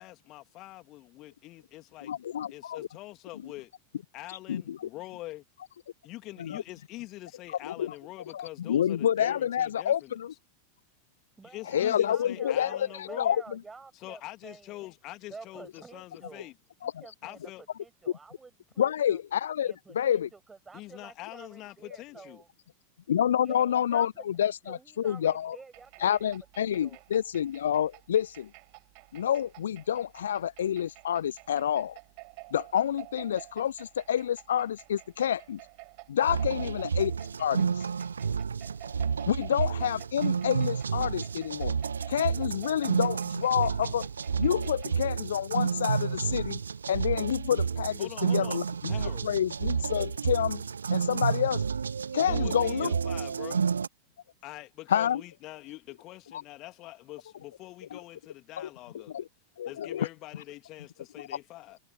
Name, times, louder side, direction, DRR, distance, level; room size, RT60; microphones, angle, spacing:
voice 1, 0.0-2.1 2.5-3.7 4.1-5.4 6.0-10.1 11.4-13.3 13.9-16.5 17.2-17.6 20.7-22.4 36.5-36.8 48.0-48.6 48.9-49.3 52.2-53.6 54.4-59.2 59.7-61.8, left 18 dB, 40° left, 2.4 m, -44 dB
voice 2, 2.0-2.9 3.4-3.5 4.5-4.9 6.4-6.6 7.6-7.9 8.3-10.3 11.7-13.6 16.8-16.9 18.8-20.3 23.1-25.6 26.0-28.5 29.1-32.0 32.5-35.6 36.1-37.1 37.4-37.9 39.3-41.8 42.1-44.1 44.4-46.6 46.9-50.6 50.9-51.7 52.1-52.9 54.9-55.2 56.3-56.4 57.9-58.0 58.6-58.7 58.9-59.3 59.6-60.1, left 9 dB, 65° left, 0.8 m, -28 dB
voice 3, 11.4-14.9 15.3-16.5 16.8-17.4 17.8-19.2 19.6-22.5 23.4-27.0, right 4 dB, 15° right, 5.3 m, -50 dB
sound 1, 25.7-45.0, right 40 dB or more, 45° right, 4.3 m, -50 dB
sound 2, 36.2-53.9, right 6 dB, 70° right, 1.0 m, -30 dB
figure-of-eight pair, 90°, 0 cm